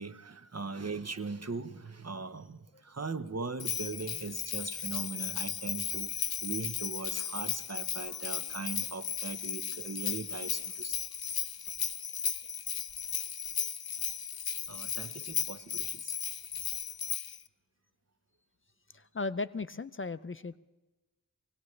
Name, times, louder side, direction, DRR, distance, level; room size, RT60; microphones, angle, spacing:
voice 1, 0.0-11.0 14.7-16.1, right 4 dB, 45° right, 11 dB, 1.0 m, -40 dB
Bell, 3.6-17.4, left 8 dB, 80° left, 0.6 m, -35 dB
voice 2, 18.9-20.6, left 3 dB, 35° left, 15 dB, 0.5 m, -36 dB
24.0 x 18.5 x 3.3 m, 1.1 s
wide cardioid pair, 45°, 36 cm